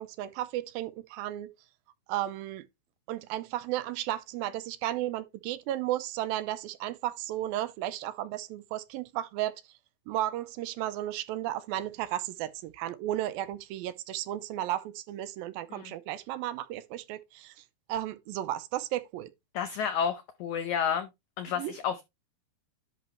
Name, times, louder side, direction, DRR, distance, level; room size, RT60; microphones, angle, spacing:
voice 1, 0.0-1.5 2.1-2.7 3.1-9.5 10.1-19.3 21.6-21.7, right 13 dB, 80° right, 2.4 m, -34 dB
voice 2, 19.5-21.1 21.4-22.0, left 8 dB, 85° left, 1.7 m, -30 dB
11.0 x 4.0 x 4.3 m
omnidirectional pair, 4.4 m